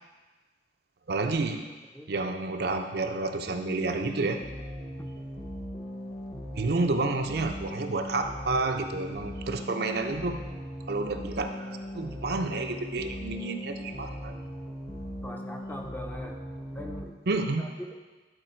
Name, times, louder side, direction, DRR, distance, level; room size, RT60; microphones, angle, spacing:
voice 1, 1.1-1.6 2.1-4.4 6.6-10.4 10.9-14.3 17.3-17.6, right 3 dB, 60° right, 5 dB, 0.5 m, -30 dB
sound 1, 3.5-17.0, equal, 30° left, 1.1 m, -39 dB
voice 2, 15.2-16.4 16.7-17.1 17.6-17.9, equal, 10° left, 2 dB, 0.6 m, -41 dB
11.0 x 4.4 x 4.4 m, 1.3 s
head